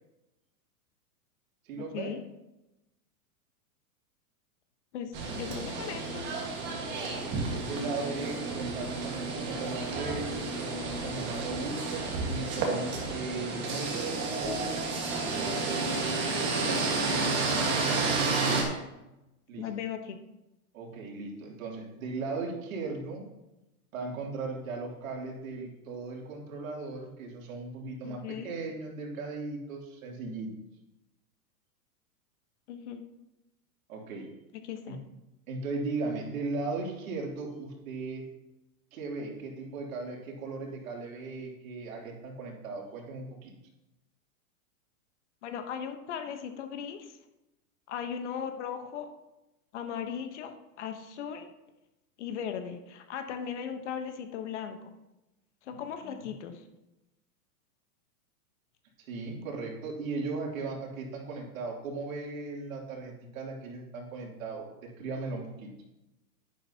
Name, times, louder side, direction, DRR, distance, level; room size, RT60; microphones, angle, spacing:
voice 1, 1.6-2.1 7.0-14.8 15.2-15.6 19.5-19.7 20.7-23.3 23.9-30.5 33.9-34.3 34.9-35.0 35.5-38.3 38.9-43.5 55.7-56.3 59.0-65.7, right 3 dB, 65° right, -1 dB, 3.0 m, -37 dB
voice 2, 4.9-6.4 18.2-18.7 19.6-20.2 28.0-28.5 32.7-33.0 34.6-35.0 45.4-47.2 47.9-49.1 49.7-51.5 52.2-54.9 55.6-56.6, left 8 dB, 50° left, 7 dB, 1.1 m, -38 dB
sound 1, 5.1-18.6, right 3 dB, 25° right, 1.6 m, -31 dB
10.5 x 10.5 x 2.8 m, 0.95 s
supercardioid pair, 165°, 45 cm